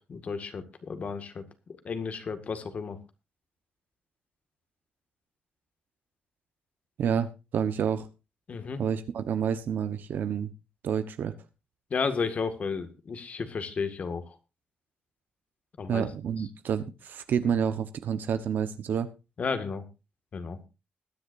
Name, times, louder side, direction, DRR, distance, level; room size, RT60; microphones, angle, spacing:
voice 1, 0.1-1.4 1.8-3.0 8.5-8.8 11.9-14.2 15.8-16.0 19.4-19.8 20.3-20.6, left 5 dB, 45° left, 9 dB, 1.9 m, -32 dB
voice 2, 7.0-8.1 8.8-10.5 10.8-11.3 15.9-19.1, right 8 dB, 70° right, 10 dB, 1.0 m, -29 dB
21.0 x 10.0 x 2.6 m, 0.27 s
cardioid pair, 120°, 3 cm